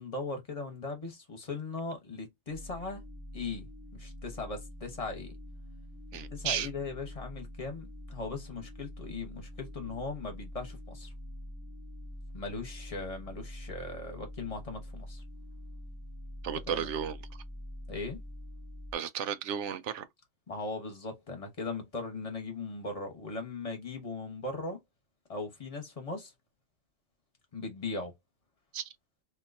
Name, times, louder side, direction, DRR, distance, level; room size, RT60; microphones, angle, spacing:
voice 1, 0.0-3.0 3.3-5.3 6.3-11.1 12.3-15.2 16.7-16.9 17.9-18.2 20.5-24.8 25.3-26.3 27.5-28.1, left 3 dB, 35° left, 1.0 m, -39 dB
sound 1, 2.5-18.9, left 1 dB, 20° right, 0.6 m, -45 dB
voice 2, 6.1-6.7 16.4-17.2 18.9-20.1 28.7-28.8, right 8 dB, 90° right, 0.9 m, -33 dB
3.7 x 2.7 x 2.6 m
omnidirectional pair, 1.2 m